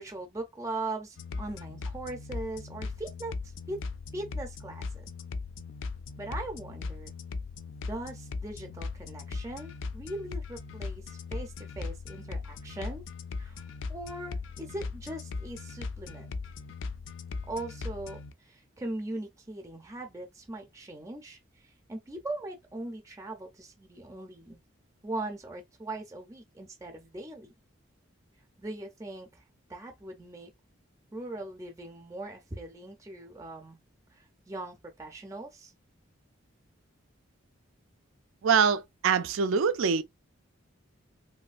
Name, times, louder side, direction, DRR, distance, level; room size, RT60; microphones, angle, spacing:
voice 1, 0.0-3.8 4.1-5.1 6.2-7.1 7.8-13.0 13.4-13.6 13.9-16.3 17.5-24.6 25.0-27.5 28.6-29.4 29.7-30.5 31.1-33.8 34.1-35.7, right 2 dB, 15° right, 0.5 m, -40 dB
sound 1, 1.2-18.3, left 4 dB, 65° left, 0.3 m, -39 dB
voice 2, 38.4-40.0, right 6 dB, 75° right, 0.4 m, -24 dB
3.0 x 2.6 x 2.4 m
head